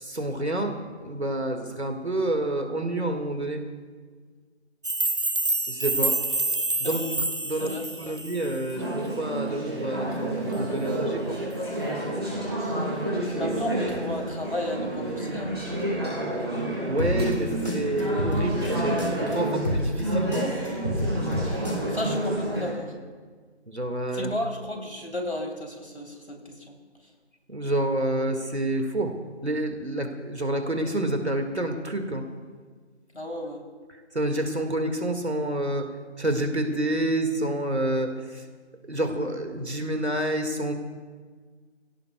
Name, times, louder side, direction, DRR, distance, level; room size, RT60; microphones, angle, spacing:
voice 1, 0.0-3.6 5.7-6.2 6.8-7.1 7.4-11.4 16.8-20.5 23.7-24.3 27.5-29.1 29.4-32.3 34.1-35.9 36.2-38.4 38.9-40.7, right 1 dB, 70° right, 5 dB, 2.0 m, -28 dB
sound 1, 4.8-8.8, right 2 dB, 50° right, 0.4 m, -27 dB
voice 2, 7.6-8.2 12.6-12.8 13.4-15.6 21.4-22.9 24.1-26.7 33.1-33.6, left 1 dB, 70° left, 1 dB, 3.4 m, -33 dB
Conversation / Chatter, 8.7-22.7, right 1 dB, 20° right, 3.6 m, -29 dB
sound 2, 17.0-19.3 19.6-22.0, equal, 40° left, 2.8 m, -29 dB
26.5 x 17.0 x 2.3 m, 1.5 s
figure-of-eight pair, 175°, 34 cm